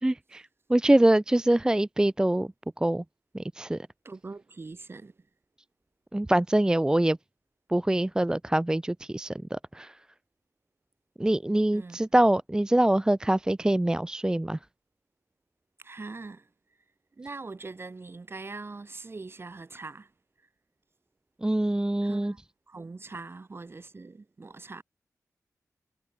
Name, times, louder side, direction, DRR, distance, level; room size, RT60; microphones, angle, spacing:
voice 1, 0.0-2.5 2.8-3.0 3.3-3.9 6.1-7.2 7.7-10.0 11.2-14.6 21.4-22.3, right 1 dB, 10° right, 0.5 m, -24 dB
voice 2, 4.0-5.3 11.7-12.0 15.8-16.5 17.1-20.1 22.0-22.4 22.7-24.8, right 3 dB, 40° right, 2.1 m, -42 dB
wide cardioid pair, 85°, 6 cm